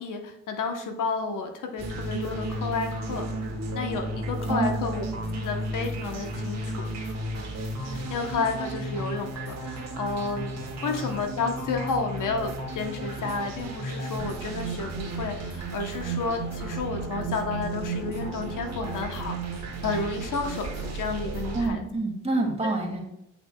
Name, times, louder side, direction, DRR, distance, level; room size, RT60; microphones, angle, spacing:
voice 1, 0.0-3.3 3.7-5.1 5.3-6.9 7.9-10.5 10.8-19.5 19.8-21.8, left 4 dB, 70° left, 5 dB, 1.0 m, -31 dB
sound 1, 1.8-21.7, right 2 dB, 55° right, 1.7 m, -33 dB
voice 2, 10.7-11.0 21.5-23.0, right 2 dB, 20° right, -1 dB, 2.1 m, -28 dB
8.5 x 5.9 x 2.3 m, 0.82 s
cardioid pair, 100°, 33 cm